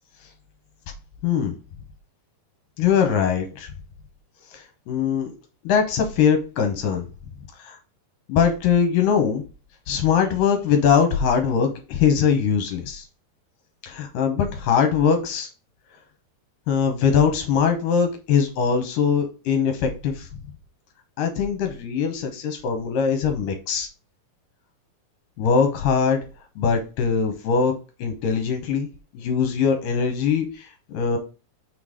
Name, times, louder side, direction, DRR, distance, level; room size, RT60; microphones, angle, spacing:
voice 1, 1.2-1.6 2.8-3.7 4.5-5.3 5.6-7.0 7.6-7.8 8.3-9.4 9.9-13.1 13.8-15.5 16.7-20.3 21.2-23.9 25.4-26.2 26.6-28.9 29.1-31.2, left 6 dB, 70° left, 5 dB, 2.3 m, -22 dB
6.2 x 3.9 x 4.9 m, 0.33 s
omnidirectional pair, 4.5 m